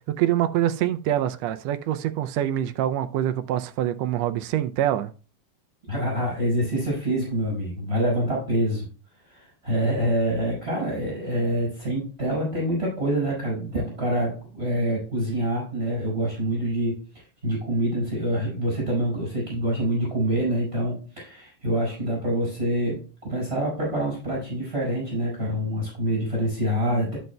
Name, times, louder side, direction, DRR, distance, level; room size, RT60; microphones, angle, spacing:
voice 1, 0.2-5.1, right 12 dB, 75° right, 1.6 m, -25 dB
voice 2, 5.9-8.9 9.3-27.2, right 1 dB, 20° right, 5.5 m, -26 dB
12.0 x 7.8 x 2.2 m
omnidirectional pair, 3.4 m